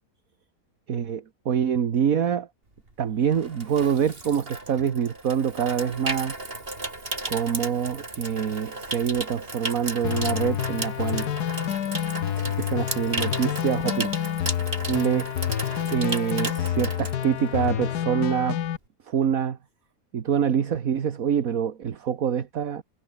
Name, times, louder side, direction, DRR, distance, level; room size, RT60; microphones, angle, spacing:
voice 1, 0.9-2.5 3.0-6.3 7.3-11.3 12.3-14.1 14.9-15.3 15.9-18.6 19.1-19.6 20.1-22.8, right 8 dB, 65° right, 1.7 m, -25 dB
Water tap faucet / Sink (filling or washing), 2.8-17.8 18.1-18.4, right 2 dB, 35° right, 4.2 m, -35 dB
sound 1, 10.0-18.8, left 10 dB, 85° left, 1.6 m, -28 dB
omnidirectional pair, 1.7 m